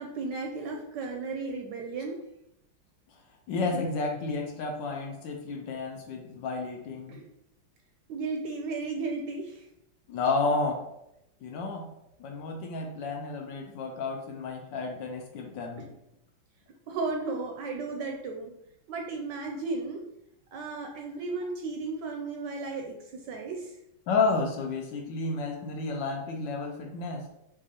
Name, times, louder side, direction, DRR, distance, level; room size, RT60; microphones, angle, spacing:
voice 1, 0.0-2.2 3.7-3.8 7.1-7.2 8.1-9.7 16.9-18.5 18.9-20.0 20.5-23.8, right 3 dB, 75° right, 2 dB, 1.0 m, -34 dB
voice 2, 3.5-7.2 10.1-10.8 11.4-11.8 12.2-15.9 24.1-27.2, left 3 dB, 70° left, 2 dB, 1.2 m, -31 dB
6.2 x 2.4 x 2.8 m, 0.82 s
omnidirectional pair, 2.2 m